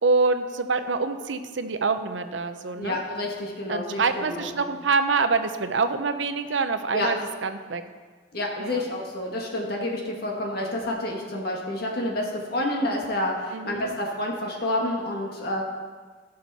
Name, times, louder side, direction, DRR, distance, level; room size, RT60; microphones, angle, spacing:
voice 1, 0.0-3.0 3.7-7.8 8.6-8.8 13.5-13.9, right 4 dB, 85° right, 9 dB, 0.7 m, -26 dB
voice 2, 2.8-4.6 6.9-7.1 8.3-15.6, left 1 dB, 55° left, -1 dB, 1.6 m, -29 dB
16.0 x 6.4 x 4.2 m, 1.5 s
head